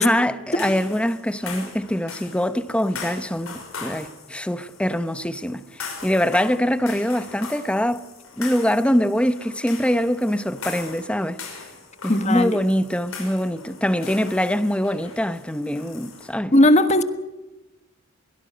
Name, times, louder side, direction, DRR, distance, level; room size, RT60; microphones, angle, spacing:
voice 1, 0.0-8.0 8.4-11.4 12.0-16.5, equal, 5° left, 0.8 m, -23 dB
sound 1, 0.6-16.3, left 5 dB, 90° left, 6.0 m, -40 dB
voice 2, 12.1-12.6 16.5-17.0, left 1 dB, 35° left, 1.5 m, -16 dB
22.5 x 18.0 x 7.9 m
head